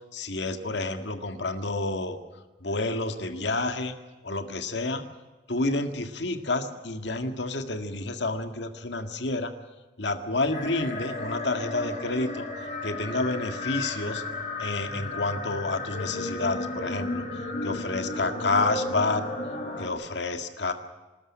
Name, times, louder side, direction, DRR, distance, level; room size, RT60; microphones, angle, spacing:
voice 1, 0.1-2.2 2.6-3.9 4.2-5.0 5.5-9.5 10.0-12.5 12.8-14.2 14.6-17.2 17.6-19.2 19.8-20.7, left 2 dB, 75° left, 7 dB, 1.9 m, -29 dB
sound 1, 10.5-19.9, left 2 dB, 40° left, 6.0 m, -34 dB
26.0 x 13.5 x 10.0 m, 1.2 s
head